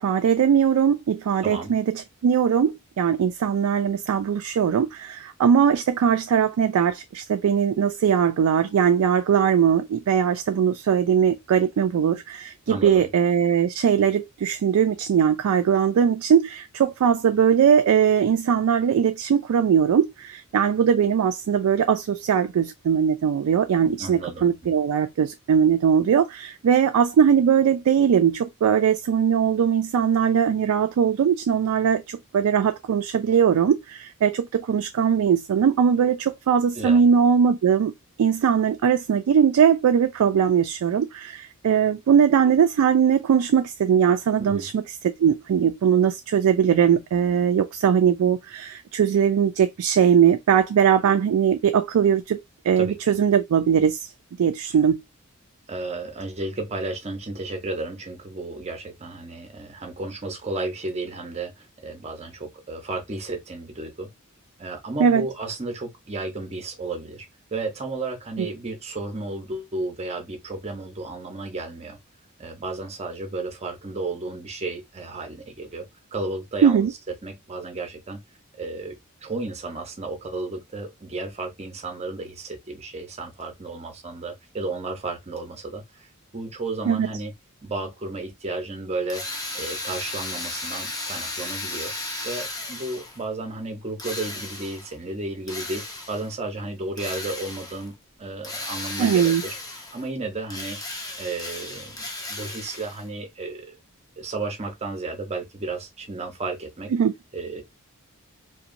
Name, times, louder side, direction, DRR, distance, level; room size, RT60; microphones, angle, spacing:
voice 1, 0.0-37.9 38.2-44.8 45.2-54.1 54.4-55.0 65.0-65.3 68.4-68.5 76.6-76.9 86.9-87.1 99.0-99.4 106.9-107.1, right 7 dB, 90° right, 0.3 m, -20 dB
voice 2, 1.4-1.8 12.7-13.1 24.0-24.5 36.8-37.0 44.4-44.7 52.8-53.1 55.7-64.1 64.6-67.3 67.5-72.0 72.4-75.8 76.1-78.2 78.6-79.0 79.2-86.1 86.3-87.3 87.6-89.2 89.5-91.9 92.2-95.8 96.1-97.9 98.2-99.5 99.9-100.8 101.2-102.0 102.3-103.7 104.2-106.9 107.3-107.6, right 2 dB, 30° right, 0.6 m, -33 dB
Drill, 89.1-93.2 94.0-94.9 95.5-96.3 97.0-97.9 98.4-100.1 100.5-103.1, left 2 dB, 15° left, 0.5 m, -34 dB
2.8 x 2.2 x 2.5 m
head